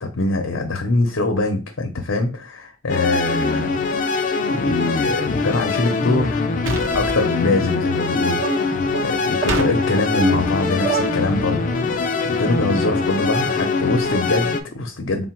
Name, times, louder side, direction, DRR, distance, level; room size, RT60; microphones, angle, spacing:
voice 1, 0.0-3.7 4.2-8.4 9.0-11.6 12.2-15.3, left 2 dB, 85° left, 4 dB, 0.6 m, -23 dB
sound 1, 2.9-14.6, left 4 dB, 40° left, 0.4 m, -23 dB
sound 2, 6.7-7.2 9.5-9.7, right 2 dB, 80° right, 0.7 m, -25 dB
sound 3, 8.4-11.8, right 4 dB, 40° right, 0.4 m, -28 dB
3.7 x 2.2 x 4.4 m, 0.32 s
head